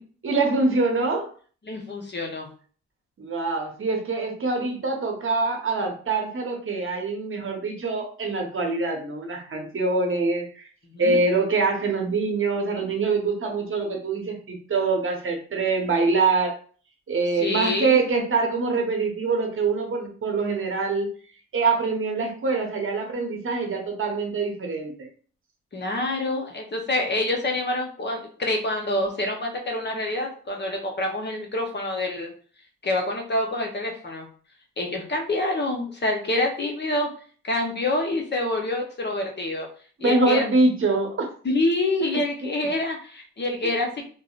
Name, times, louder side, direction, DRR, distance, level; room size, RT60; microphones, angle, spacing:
voice 1, 0.2-1.3 3.2-10.7 11.0-16.6 17.1-21.1 21.5-25.1 40.0-41.2 42.0-42.1, right 3 dB, 40° right, 2 dB, 0.9 m, -24 dB
voice 2, 1.6-2.5 10.8-11.2 17.4-18.0 25.7-32.3 32.8-34.3 34.8-37.1 37.4-39.7 40.0-40.4 41.4-44.0, left 2 dB, 35° left, 2 dB, 0.8 m, -27 dB
3.5 x 2.0 x 2.4 m, 0.43 s
supercardioid pair, 60°, 31 cm